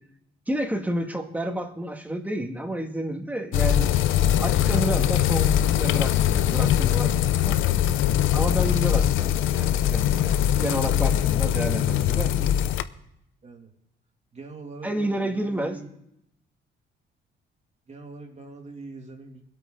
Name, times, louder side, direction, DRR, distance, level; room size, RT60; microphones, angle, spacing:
voice 1, 0.5-3.9 4.4-7.9 8.3-12.3 14.8-15.8, right 1 dB, 10° right, 4 dB, 1.8 m, -30 dB
sound 1, 3.5-12.8, left 11 dB, 90° left, 0.6 m, -22 dB
voice 2, 11.7-12.1 12.4-12.5 13.4-13.7 14.3-16.1 17.9-19.4, right 3 dB, 35° right, 2 dB, 2.6 m, -43 dB
22.0 x 8.4 x 3.9 m, 0.80 s
cardioid pair, 90°, 20 cm